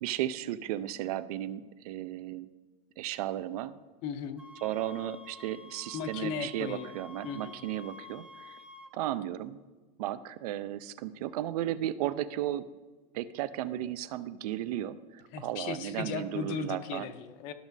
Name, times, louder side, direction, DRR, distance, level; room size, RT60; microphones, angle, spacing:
voice 1, 0.0-2.5 3.0-3.8 4.6-8.6 8.9-9.6 10.0-12.7 13.1-17.1, right 12 dB, 75° right, 14 dB, 0.4 m, -35 dB
voice 2, 4.0-4.4 5.9-6.9 7.2-7.6 15.3-17.5, left 6 dB, 40° left, 10 dB, 0.6 m, -36 dB
sound 1, 4.4-8.9, left 4 dB, 5° right, 0.4 m, -50 dB
12.5 x 6.1 x 2.6 m, 1.3 s
supercardioid pair, 160°, 20 cm